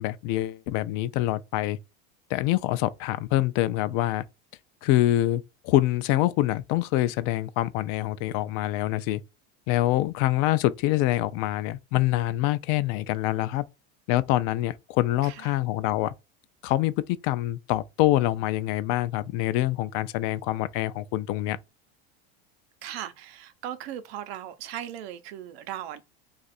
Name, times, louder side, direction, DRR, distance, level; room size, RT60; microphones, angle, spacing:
voice 1, 0.0-1.8 2.3-4.2 4.8-9.2 9.7-13.7 14.1-16.1 16.6-16.9 17.2-21.6, left 15 dB, 60° left, 0.4 m, -25 dB
voice 2, 15.2-15.6 22.8-26.0, right 11 dB, 85° right, 0.7 m, -38 dB
2.5 x 2.4 x 4.1 m
supercardioid pair, 125°, 30 cm